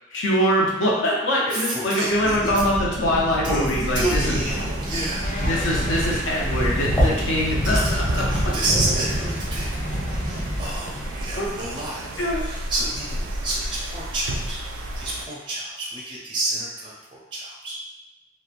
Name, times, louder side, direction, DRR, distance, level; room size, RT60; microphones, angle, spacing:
voice 1, 0.1-4.2 5.5-8.5 11.3-11.5 12.2-12.4, equal, 75° left, -3 dB, 0.6 m, -23 dB
voice 2, 1.5-2.6 3.4-5.3 7.6-14.6 14.9-17.8, right 1 dB, 25° right, -5 dB, 0.4 m, -30 dB
sound 1, 2.1-11.3, equal, 20° left, 0.7 m, -26 dB
sound 2, 3.8-15.3, right 1 dB, 85° right, 0.3 m, -33 dB
sound 3, 5.2-11.6, left 1 dB, 40° left, 0.4 m, -39 dB
2.9 x 2.1 x 2.4 m, 0.93 s
head